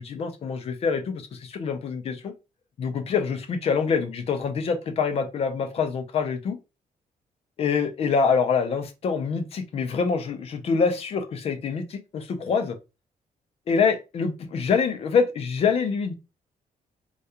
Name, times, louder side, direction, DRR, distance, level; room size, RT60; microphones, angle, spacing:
voice 1, 0.0-2.3 2.8-6.6 7.6-12.8 13.7-16.1, left 5 dB, 45° left, 0.5 m, -25 dB
2.3 x 2.2 x 2.7 m
cardioid pair, 160°, 15 cm